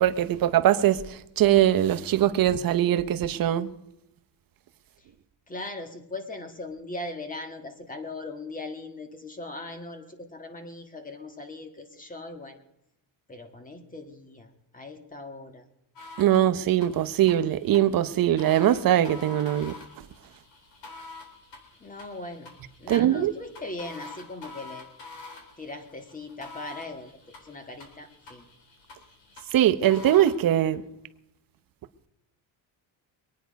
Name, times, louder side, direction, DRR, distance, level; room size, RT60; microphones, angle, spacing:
voice 1, 0.0-1.0 1.4-3.7 16.2-19.7 22.9-23.3 29.5-30.8, right 12 dB, 45° right, 0.8 m, -21 dB
voice 2, 5.5-12.6 13.3-15.6 21.8-22.5 22.8-24.9 25.6-28.4, left 2 dB, 15° left, 1.6 m, -39 dB
sound 1, 16.0-30.3, left 3 dB, 60° left, 3.9 m, -47 dB
23.5 x 9.4 x 5.2 m
cardioid pair, 150°, 48 cm